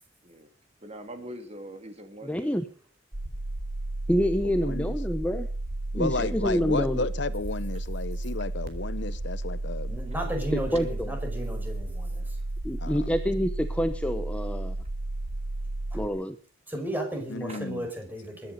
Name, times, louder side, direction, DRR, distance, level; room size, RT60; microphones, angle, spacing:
voice 1, 0.8-2.5 17.5-17.7, right 1 dB, 35° right, 2.7 m, -42 dB
voice 2, 2.2-2.6 4.1-5.5 5.9-7.1 10.5-11.1 12.6-14.7 15.9-16.4, equal, 5° left, 0.9 m, -27 dB
sound 1, 3.1-16.1, right 2 dB, 55° right, 3.1 m, -33 dB
voice 3, 4.4-5.0 5.9-9.9 12.8-13.1 17.3-17.9, left 3 dB, 65° left, 0.9 m, -33 dB
voice 4, 9.9-12.2 15.9-16.0 16.7-18.5, right 1 dB, 10° right, 5.1 m, -34 dB
22.0 x 10.5 x 5.3 m
head